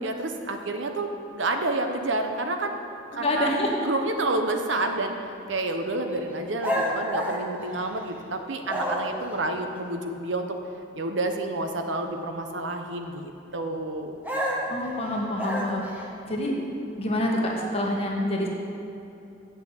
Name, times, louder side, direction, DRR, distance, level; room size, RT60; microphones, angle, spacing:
voice 1, 0.0-2.8 3.1-3.5 3.8-5.1 5.5-10.6 10.9-14.2, right 2 dB, 75° right, 5 dB, 0.9 m, -29 dB
voice 2, 3.2-3.7 14.7-15.8 16.3-16.6 17.0-18.5, left 1 dB, 30° left, -1 dB, 1.4 m, -26 dB
sound 1, 6.6-8.2 8.6-9.3 14.2-16.0, equal, 10° right, 1.1 m, -29 dB
8.1 x 6.3 x 8.2 m, 2.8 s
head